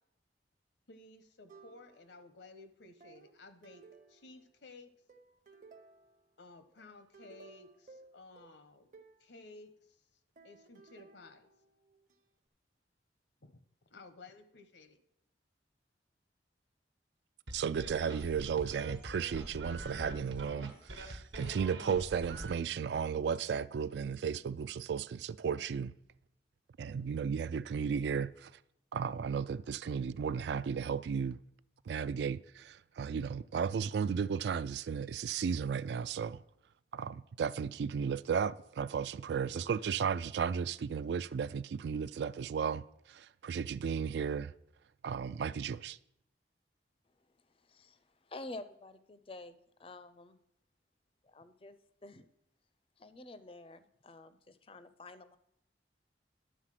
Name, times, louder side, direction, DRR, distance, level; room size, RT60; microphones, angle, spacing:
voice 1, 0.9-3.8 4.1-4.9 6.4-8.9 9.2-9.7 10.4-11.5 13.4-15.0, left 3 dB, 75° left, 0.9 m, -55 dB
sound 1, 1.5-2.3 3.0-4.6 5.1-6.3 6.8-9.3 10.4-12.2, right 4 dB, 45° right, 0.8 m, -58 dB
voice 2, 17.5-25.9 26.8-28.5 28.9-31.4 31.9-36.4 36.9-44.5 45.0-46.0, right 6 dB, 70° right, 0.3 m, -34 dB
sound 2, 17.5-22.5, right 1 dB, 90° right, 1.3 m, -44 dB
voice 3, 47.1-50.4 51.2-51.8 52.0-52.3 53.0-55.4, left 2 dB, 30° left, 0.5 m, -50 dB
11.0 x 4.0 x 7.5 m
head